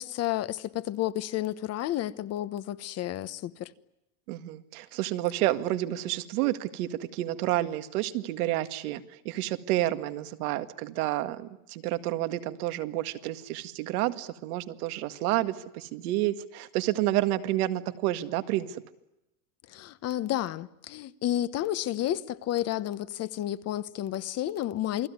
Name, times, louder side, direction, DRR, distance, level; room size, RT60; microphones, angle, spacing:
voice 1, 0.0-3.7 19.7-25.1, left 13 dB, 35° left, 1.1 m, -31 dB
voice 2, 4.3-18.8, right 15 dB, 80° right, 2.0 m, -30 dB
28.5 x 20.5 x 9.6 m
supercardioid pair, 150°, 44 cm